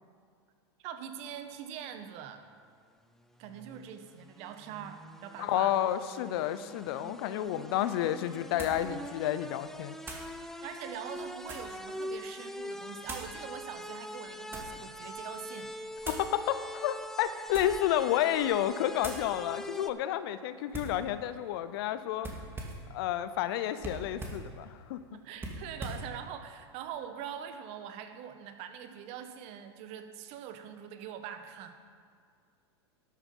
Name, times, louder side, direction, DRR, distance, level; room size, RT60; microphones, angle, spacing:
voice 1, 0.8-2.5 3.4-5.7 10.6-15.7 25.1-31.9, right 9 dB, 50° right, 8 dB, 1.2 m, -43 dB
sound 1, 3.2-19.9, left 1 dB, 5° left, 0.6 m, -44 dB
voice 2, 5.4-9.9 16.1-22.3 22.9-25.0, left 11 dB, 60° left, 13 dB, 0.7 m, -30 dB
sound 2, 7.4-7.5 8.6-8.9 10.0-10.3 11.1-11.8 13.0-13.4 14.1-14.8 16.0-16.3 17.4-17.9 18.3-18.6 19.0-19.3 20.7-21.0 22.2-22.9 23.8-24.5 25.4-26.1, right 1 dB, 15° right, 2.3 m, -42 dB
12.0 x 8.4 x 5.5 m, 2.2 s
hypercardioid pair, 105°, 14 cm